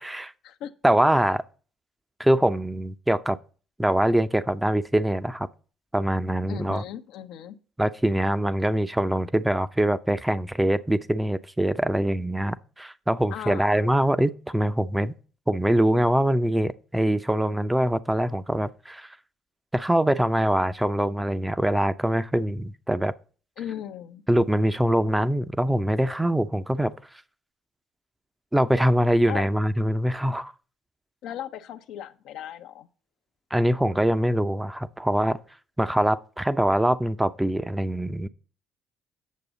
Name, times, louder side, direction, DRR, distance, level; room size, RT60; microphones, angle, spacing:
voice 1, 0.0-0.3 0.8-1.4 2.2-3.4 3.8-5.5 5.9-6.8 7.8-15.1 15.5-19.2 19.7-23.1 24.3-26.9 28.5-30.5 33.5-35.4 35.8-38.3, right 1 dB, 10° right, 0.6 m, -23 dB
voice 2, 6.5-7.6 13.3-14.1 23.6-24.2 29.3-29.5 31.2-32.9, left 10 dB, 70° left, 0.7 m, -37 dB
8.4 x 6.8 x 3.9 m
hypercardioid pair, 50°, 0 cm